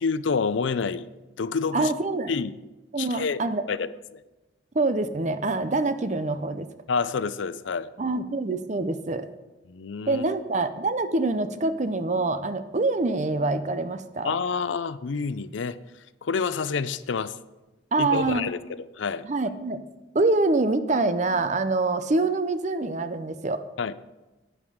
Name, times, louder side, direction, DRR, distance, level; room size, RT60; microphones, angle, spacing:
voice 1, 0.0-1.1 1.4-1.9 2.3-2.5 3.0-3.4 3.7-4.2 6.9-7.9 9.7-10.2 14.2-15.8 16.2-17.4 18.0-19.2 23.8-23.9, left 5 dB, 80° left, 15 dB, 0.5 m, -28 dB
voice 2, 1.7-2.3 2.9-3.7 4.7-6.7 8.0-9.3 10.1-14.4 17.9-18.4 19.2-19.8 20.1-23.6, right 2 dB, 40° right, 11 dB, 0.6 m, -25 dB
11.0 x 8.9 x 4.9 m, 1.1 s
head